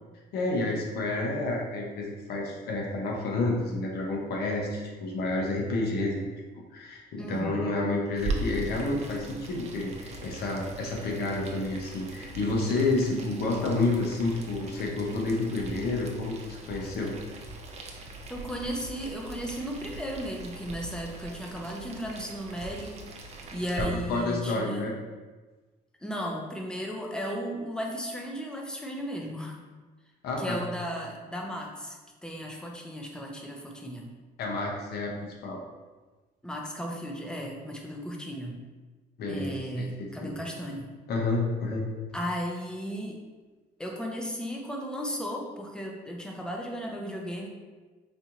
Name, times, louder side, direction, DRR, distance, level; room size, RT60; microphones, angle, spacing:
voice 1, 0.3-6.3 6.7-17.1 23.8-24.9 30.2-30.6 34.4-35.1 35.4-35.6 39.2-40.3 41.1-41.8, left 2 dB, 70° left, -1 dB, 0.8 m, -29 dB
voice 2, 7.2-7.7 18.3-23.0 23.5-24.9 26.0-29.6 30.4-34.1 36.4-38.6 39.3-40.9 42.1-43.2 43.8-47.5, equal, 5° left, 0 dB, 0.5 m, -35 dB
Boiling, 8.2-23.8, right 2 dB, 40° right, 0.5 m, -41 dB
4.3 x 2.5 x 2.8 m, 1.3 s
cardioid pair, 110°, 17 cm